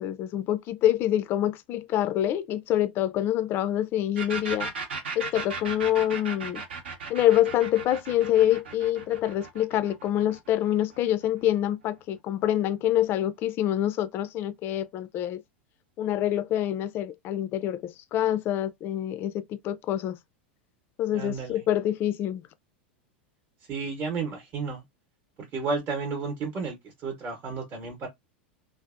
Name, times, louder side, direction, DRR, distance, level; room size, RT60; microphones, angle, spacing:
voice 1, 0.0-4.7 5.2-6.6 7.1-15.4 16.0-20.2 21.0-22.4, left 12 dB, 40° left, 0.3 m, -26 dB
sound 1, 4.2-11.7, right 4 dB, 80° right, 0.8 m, -37 dB
voice 2, 21.1-21.6 23.7-24.8 25.5-28.1, right 4 dB, 35° right, 0.8 m, -32 dB
2.6 x 2.0 x 2.4 m
hypercardioid pair, 100°, 6 cm